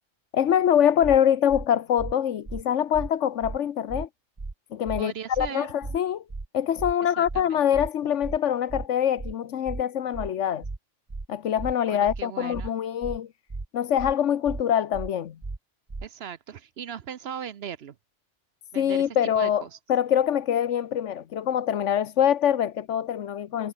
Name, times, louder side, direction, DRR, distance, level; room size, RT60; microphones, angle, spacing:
voice 1, 0.3-4.1 4.7-6.2 6.5-10.7 11.3-13.3 13.7-15.4 18.7-19.6 19.9-23.7, left 9 dB, 80° left, 1.2 m, -24 dB
sound 1, 1.0-1.2 1.5-1.7 2.0-2.1 2.5-2.6 2.9-3.1 3.4-3.6 3.9-4.1 4.4-4.5 4.9-5.0 5.3-5.5 5.8-6.0 6.3-6.5 6.8-6.9 7.3-7.4 7.7-7.9 8.2-8.4 8.7-8.9 9.2-9.3 9.7-9.8 10.1-10.3 10.6-10.8 11.1-11.3 11.6-11.7 12.1-12.2 12.5-12.7 13.0-13.2 13.5-13.7 14.0-14.1 14.5-14.6 14.9-15.1 15.4-15.6 15.9-16.1, right 3 dB, 25° right, 1.2 m, -35 dB
voice 2, 5.0-5.7 7.2-7.8 11.9-12.7 16.0-17.9 18.7-19.8, right 8 dB, 60° right, 1.0 m, -38 dB
omnidirectional pair, 1.2 m